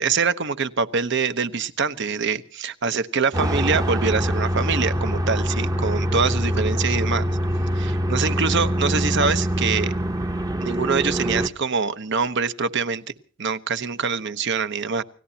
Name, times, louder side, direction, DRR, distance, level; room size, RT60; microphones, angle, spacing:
voice 1, 0.0-7.3 7.8-9.9 10.6-13.0 13.4-15.0, right 5 dB, 60° right, 12 dB, 1.0 m, -24 dB
sound 1, 3.3-11.5, equal, 20° right, 0.9 m, -24 dB
29.5 x 17.0 x 2.9 m, 0.42 s
head